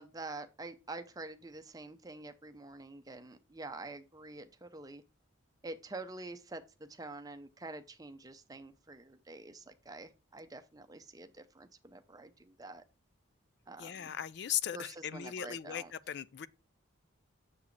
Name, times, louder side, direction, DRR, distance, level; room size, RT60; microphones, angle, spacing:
voice 1, 0.0-5.0 5.6-12.8 13.7-14.1 14.7-15.9, right 2 dB, 20° right, 0.6 m, -47 dB
voice 2, 13.8-16.5, left 10 dB, 55° left, 0.4 m, -38 dB
7.3 x 6.9 x 3.2 m
head